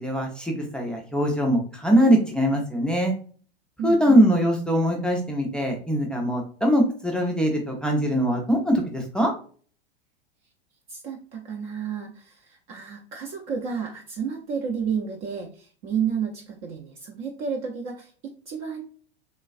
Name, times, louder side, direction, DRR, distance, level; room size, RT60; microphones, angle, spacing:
voice 1, 0.0-3.1 3.8-9.3, equal, 5° left, 1 dB, 0.4 m, -22 dB
voice 2, 3.8-4.2 10.9-18.8, right 7 dB, 40° right, 1 dB, 0.6 m, -31 dB
3.2 x 2.3 x 2.4 m, 0.43 s
figure-of-eight pair, 95°, 31 cm